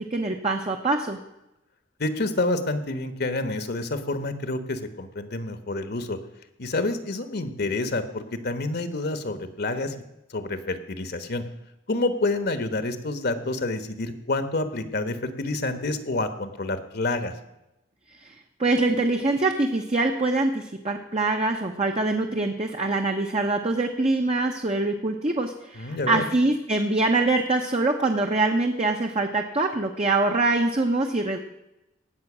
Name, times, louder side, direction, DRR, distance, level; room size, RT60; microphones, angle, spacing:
voice 1, 0.1-1.2 18.6-31.4, right 2 dB, 35° right, 3 dB, 1.0 m, -24 dB
voice 2, 2.0-6.2 6.6-9.9 10.3-11.4 11.9-17.4 25.8-26.2, left 2 dB, 55° left, 10 dB, 1.3 m, -28 dB
18.5 x 7.6 x 6.2 m, 0.91 s
head